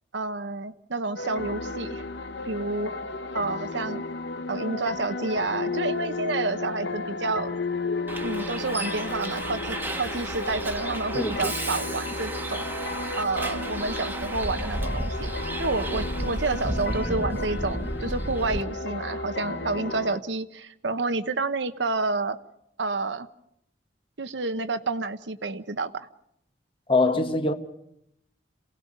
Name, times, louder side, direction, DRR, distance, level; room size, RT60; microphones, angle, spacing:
voice 1, 0.1-2.0 2.4-2.9 3.3-4.0 4.5-7.6 8.2-15.3 15.6-22.4 22.8-23.3 24.2-26.1, right 3 dB, 85° right, 1.0 m, -29 dB
sound 1, 1.2-20.2, left 3 dB, 70° left, 0.9 m, -33 dB
Bus, 8.1-18.6, right 1 dB, 10° right, 1.3 m, -33 dB
Musical instrument, 10.0-19.9, equal, 15° left, 3.0 m, -44 dB
voice 2, 11.1-11.5 26.9-27.5, left 3 dB, 30° left, 1.5 m, -23 dB
27.5 x 18.0 x 5.4 m
head